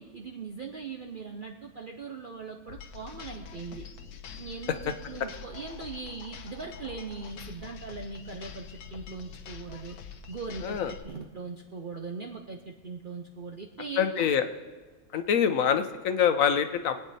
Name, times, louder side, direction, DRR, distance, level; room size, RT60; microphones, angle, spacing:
voice 1, 0.0-3.9 4.4-10.0 10.3-10.8 11.0-14.3, right 4 dB, 45° right, 3 dB, 0.8 m, -40 dB
sound 1, 2.7-11.0, left 7 dB, 80° left, 1.4 m, -45 dB
voice 2, 14.0-14.5 15.1-17.0, left 8 dB, 65° left, 9 dB, 1.2 m, -25 dB
23.0 x 8.6 x 4.2 m, 1.4 s
omnidirectional pair, 1.6 m